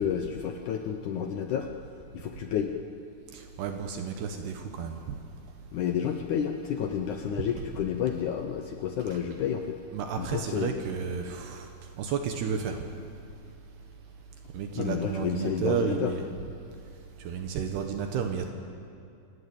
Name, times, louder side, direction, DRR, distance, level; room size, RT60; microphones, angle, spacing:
voice 1, 0.0-1.7 2.1-2.7 5.7-9.8 10.2-10.8 14.8-16.1, left 8 dB, 80° left, 5 dB, 1.7 m, -30 dB
voice 2, 3.3-5.2 9.1-9.2 9.9-11.7 12.0-12.8 14.5-16.2 17.2-18.5, right 7 dB, 75° right, 4 dB, 3.2 m, -32 dB
28.0 x 16.0 x 8.7 m, 2.5 s
omnidirectional pair, 4.9 m